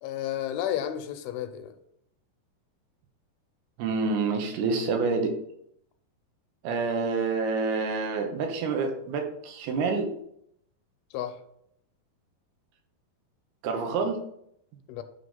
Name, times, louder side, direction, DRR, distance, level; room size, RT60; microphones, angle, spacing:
voice 1, 0.0-1.7 11.1-11.4 14.9-15.0, left 11 dB, 85° left, 8 dB, 2.5 m, -32 dB
voice 2, 3.8-5.3 6.6-10.1 13.6-14.2, right 4 dB, 80° right, 3 dB, 3.1 m, -27 dB
10.5 x 3.5 x 5.4 m, 0.73 s
omnidirectional pair, 4.4 m